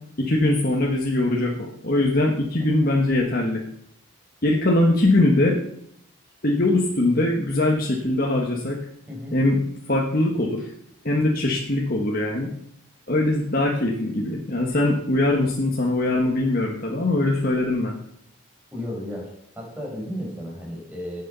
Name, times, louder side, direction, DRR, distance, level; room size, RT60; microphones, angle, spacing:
voice 1, 0.2-3.6 4.4-5.6 6.4-8.8 9.3-9.6 9.9-10.7 11.0-12.5 13.1-17.9, left 2 dB, 45° left, -1 dB, 1.4 m, -21 dB
voice 2, 9.1-9.4 18.7-21.2, equal, 5° right, -4 dB, 5.0 m, -33 dB
17.5 x 6.6 x 5.6 m, 0.72 s
head